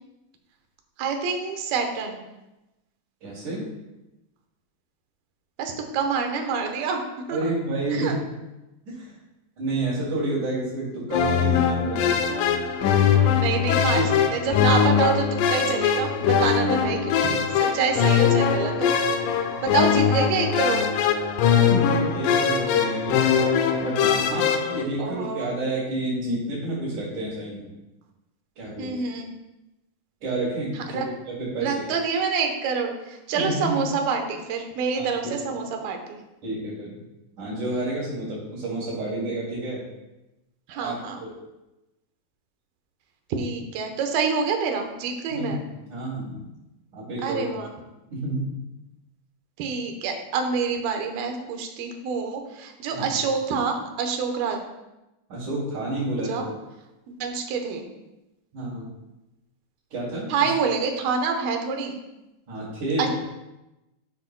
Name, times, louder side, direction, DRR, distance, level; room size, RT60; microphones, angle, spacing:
voice 1, 1.0-2.2 5.6-7.0 7.3-7.5 7.9-8.2 12.3-12.5 13.3-14.0 14.3-18.9 19.6-20.9 25.0-25.6 28.8-29.3 30.9-31.1 31.6-36.2 40.7-41.2 43.3-45.6 47.2-47.7 49.6-54.6 56.2-56.4 57.2-57.9 60.3-61.9 63.0-63.1, right 5 dB, 80° right, 4 dB, 2.9 m, -27 dB
voice 2, 3.2-3.7 7.3-8.2 8.9-9.2 9.6-12.3 13.9-14.3 21.7-23.2 23.8-27.7 28.6-28.9 30.2-31.0 31.3-31.8 33.3-33.8 35.0-35.1 36.4-37.0 37.4-39.8 40.7-41.0 41.2-41.3 45.3-45.5 45.9-46.5 46.9-47.5 48.1-48.5 52.9-53.1 55.3-56.4 58.5-58.9 59.9-60.5 62.5-63.1, right 2 dB, 55° right, -10 dB, 3.8 m, -29 dB
sound 1, 11.1-24.8, left 7 dB, 80° left, 2.2 m, -21 dB
11.5 x 7.3 x 2.2 m, 0.98 s
omnidirectional pair, 4.2 m